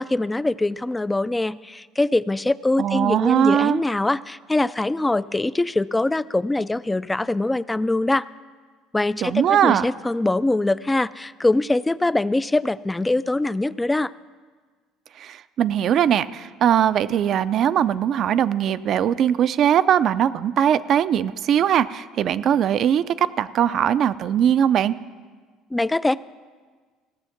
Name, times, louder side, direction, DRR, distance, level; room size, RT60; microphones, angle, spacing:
voice 1, 0.0-8.2 8.9-14.1 25.7-26.2, left 2 dB, 10° left, 17 dB, 0.3 m, -23 dB
voice 2, 2.8-3.8 9.2-9.9 15.2-24.9, right 9 dB, 55° right, 14 dB, 0.4 m, -20 dB
17.0 x 7.1 x 5.9 m, 1.5 s
supercardioid pair, 95°, 0 cm